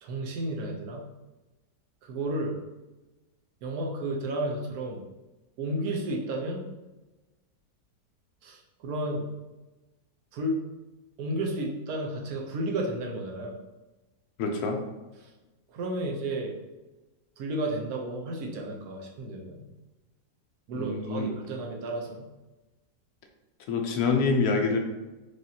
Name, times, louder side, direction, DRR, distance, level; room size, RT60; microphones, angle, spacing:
voice 1, 0.0-1.1 2.0-2.5 3.6-5.0 5.6-6.6 8.4-9.3 10.3-10.6 11.2-13.6 15.2-15.3 15.7-16.6 17.4-19.6 20.7-22.3, right 1 dB, 70° right, 0 dB, 1.1 m, -32 dB
voice 2, 14.4-14.8 20.7-21.3 23.7-24.8, left 4 dB, 70° left, 3 dB, 1.1 m, -26 dB
4.9 x 2.6 x 2.7 m, 1.1 s
omnidirectional pair, 1.7 m